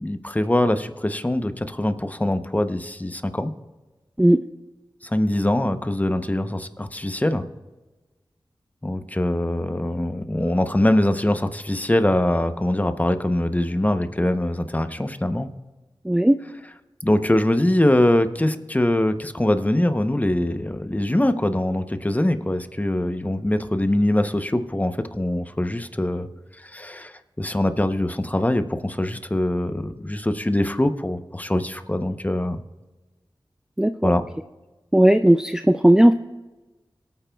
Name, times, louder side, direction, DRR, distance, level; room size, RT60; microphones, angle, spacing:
voice 1, 0.0-3.5 5.0-7.4 8.8-15.5 17.0-26.3 26.6-32.6 34.0-34.2, left 1 dB, 15° left, 9 dB, 0.8 m, -23 dB
voice 2, 16.1-16.4 33.8-34.1 34.9-36.1, right 1 dB, 5° right, 9 dB, 0.3 m, -16 dB
22.5 x 9.0 x 2.3 m, 1.2 s
wide cardioid pair, 50°, 9 cm